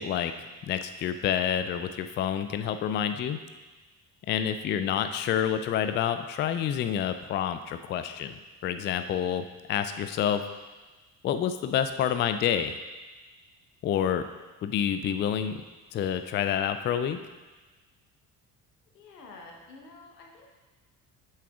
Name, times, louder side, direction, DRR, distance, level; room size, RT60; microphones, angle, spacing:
voice 1, 0.0-3.4 4.3-8.4 8.6-10.4 11.2-12.8 13.8-14.2 14.6-15.6 15.9-17.2, left 9 dB, 25° left, 9 dB, 0.3 m, -28 dB
voice 2, 18.9-20.5, left 3 dB, 80° left, 0 dB, 1.1 m, -49 dB
8.2 x 7.3 x 2.4 m, 1.2 s
figure-of-eight pair, 50°, 47 cm